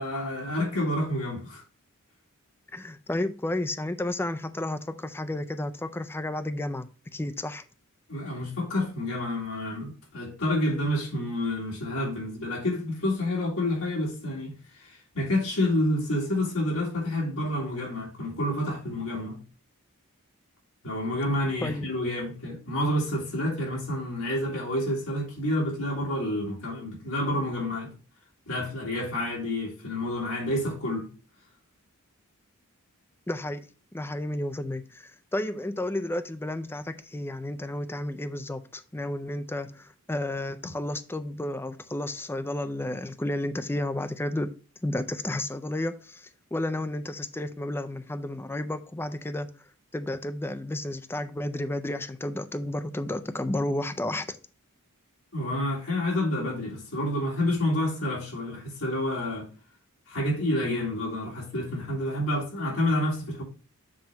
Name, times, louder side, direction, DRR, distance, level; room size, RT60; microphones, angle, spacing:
voice 1, 0.0-1.6 8.1-19.4 20.8-27.9 28.4-31.1 55.3-59.5 60.1-63.4, left 1 dB, 65° left, 3.3 m, -29 dB
voice 2, 2.7-7.6 21.6-21.9 33.3-33.7 33.9-44.5 44.8-49.5 49.9-54.4, left 1 dB, 10° left, 0.4 m, -32 dB
7.5 x 3.1 x 5.6 m
head